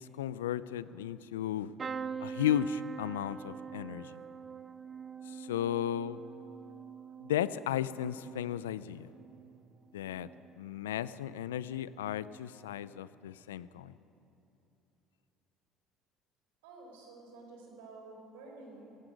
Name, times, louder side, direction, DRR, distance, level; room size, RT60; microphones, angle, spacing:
voice 1, 0.0-1.7 2.2-4.2 5.3-6.2 7.2-9.1 9.9-10.3 10.6-13.9, left 10 dB, 90° left, 17 dB, 0.4 m, -35 dB
sound 1, 1.8-9.6 10.1-10.6 11.9-12.1 12.3-12.4, right 6 dB, 35° right, 0.7 m, -45 dB
voice 2, 16.6-19.0, right 3 dB, 80° right, 0 dB, 4.0 m, -51 dB
17.0 x 15.5 x 5.2 m, 2.9 s
hypercardioid pair, 70°, 0 cm